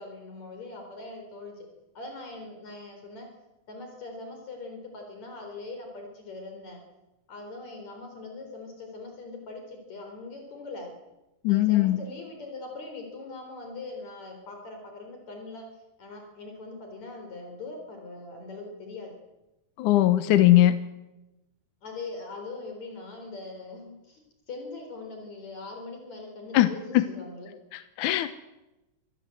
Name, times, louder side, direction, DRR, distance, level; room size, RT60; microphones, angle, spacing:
voice 1, 0.0-1.7 2.0-3.3 3.7-6.8 7.3-10.9 11.5-15.7 16.0-19.1 21.8-24.2 24.5-26.8 27.1-27.5, left 3 dB, 65° left, 3 dB, 5.3 m, -41 dB
voice 2, 11.4-12.0 19.8-20.8 26.5-27.1 27.7-28.4, left 14 dB, 80° left, 11 dB, 2.4 m, -21 dB
26.5 x 20.0 x 7.9 m, 0.98 s
omnidirectional pair, 3.5 m